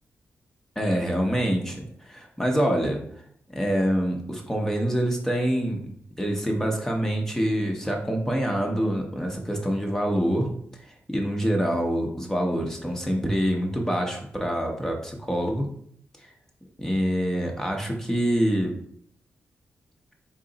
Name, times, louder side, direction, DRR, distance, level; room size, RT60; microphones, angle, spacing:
voice 1, 0.8-3.0 3.5-10.5 10.8-15.7 16.2-16.3 16.8-18.8, equal, 10° left, 1 dB, 0.7 m, -26 dB
3.8 x 3.1 x 3.9 m, 0.65 s
wide cardioid pair, 120°, 5 cm